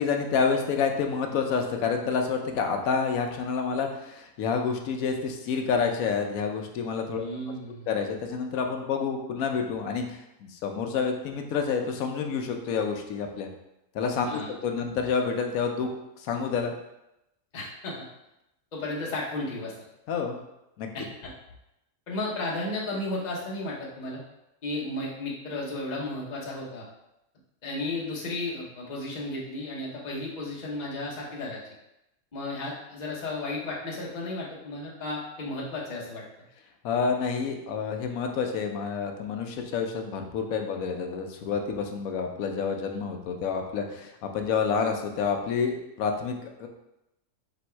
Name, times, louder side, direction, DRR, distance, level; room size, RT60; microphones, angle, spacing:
voice 1, 0.0-7.2 7.7-13.5 13.9-15.9 16.2-16.7 20.1-20.4 20.8-20.9 36.8-46.7, left 5 dB, 90° left, 4 dB, 1.1 m, -28 dB
voice 2, 7.2-7.9 14.2-14.5 17.5-18.0 18.7-19.7 20.9-21.3 22.1-24.2 24.6-26.9 27.6-31.6 32.3-36.2, left 2 dB, 35° left, -4 dB, 0.9 m, -34 dB
3.5 x 3.0 x 4.3 m, 0.88 s
omnidirectional pair, 1.4 m